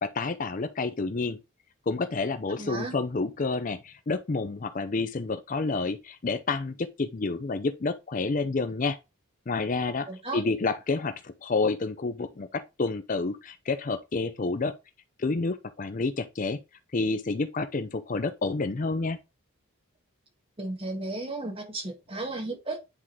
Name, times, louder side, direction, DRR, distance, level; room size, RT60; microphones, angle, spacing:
voice 1, 0.0-1.4 1.9-9.0 9.5-10.1 10.3-14.7 15.2-16.6 16.9-19.2, left 3 dB, 35° left, 0.5 m, -29 dB
voice 2, 2.6-2.9 10.1-10.4 20.6-22.8, right 2 dB, 25° right, 1.7 m, -34 dB
9.8 x 3.7 x 3.2 m
head